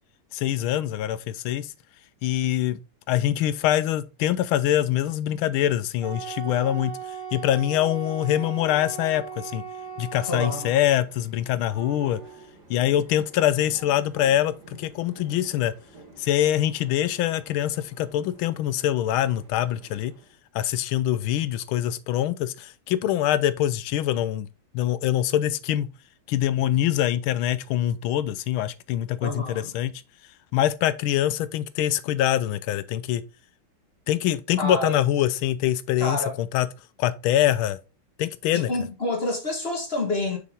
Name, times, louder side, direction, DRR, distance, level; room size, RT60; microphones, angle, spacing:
voice 1, 0.3-1.7 2.2-2.8 3.1-7.0 7.3-9.6 10.0-12.2 12.7-15.7 16.2-20.1 20.5-24.5 24.7-25.9 26.3-29.9 30.5-33.2 34.1-36.7 37.0-37.8 38.2-38.7, left 12 dB, 80° left, 1.4 m, -24 dB
Wind instrument woodwind instrument, 6.0-10.9, right 7 dB, 15° right, 2.9 m, -37 dB
sound 1, 9.6-20.4, right 3 dB, 50° right, 2.3 m, -50 dB
voice 2, 10.2-10.8 29.2-29.7 34.6-35.0 36.0-36.3 38.5-40.4, left 2 dB, 30° left, 1.5 m, -28 dB
6.2 x 5.6 x 3.6 m
omnidirectional pair, 2.3 m